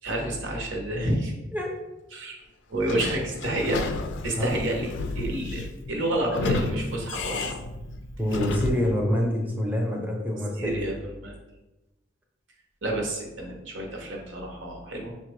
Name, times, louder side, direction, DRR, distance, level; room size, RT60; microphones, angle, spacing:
voice 1, 0.0-1.3 2.1-2.4 2.7-3.9 4.2-7.5 10.6-11.3 12.8-15.1, right 1 dB, 75° right, 1 dB, 0.8 m, -29 dB
Sliding door / Squeak, 2.8-9.0, left 3 dB, 65° left, 0.3 m, -32 dB
voice 2, 8.2-10.7, equal, 10° right, -1 dB, 0.6 m, -26 dB
5.5 x 2.2 x 3.1 m, 1.0 s
head